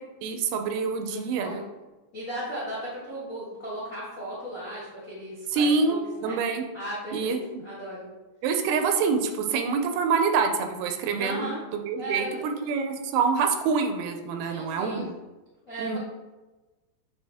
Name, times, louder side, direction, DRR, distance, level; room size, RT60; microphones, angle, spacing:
voice 1, 0.2-1.6 5.5-6.6 7.1-7.6 8.4-15.1 15.8-16.0, right 5 dB, 85° right, 5 dB, 2.5 m, -26 dB
voice 2, 1.0-1.6 2.1-6.4 6.7-7.4 7.6-8.1 11.2-11.6 12.0-12.4 14.4-15.1 15.7-16.0, equal, 55° left, -8 dB, 0.8 m, -36 dB
8.1 x 3.5 x 3.4 m, 1.2 s
omnidirectional pair, 4.4 m